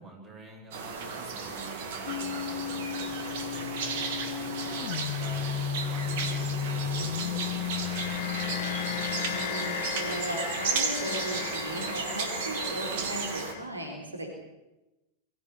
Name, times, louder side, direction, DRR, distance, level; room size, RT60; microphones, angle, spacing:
voice 1, 0.0-5.6 5.8-8.9, right 1 dB, 25° right, 2 dB, 7.9 m, -48 dB
sound 1, 0.7-13.5, right 5 dB, 50° right, 3.4 m, -34 dB
sound 2, 2.1-13.6, left 10 dB, 50° left, 1.2 m, -34 dB
voice 2, 9.3-14.3, equal, 80° right, 2 dB, 4.0 m, -36 dB
23.5 x 14.5 x 9.9 m, 0.99 s
figure-of-eight pair, 90°, 0 cm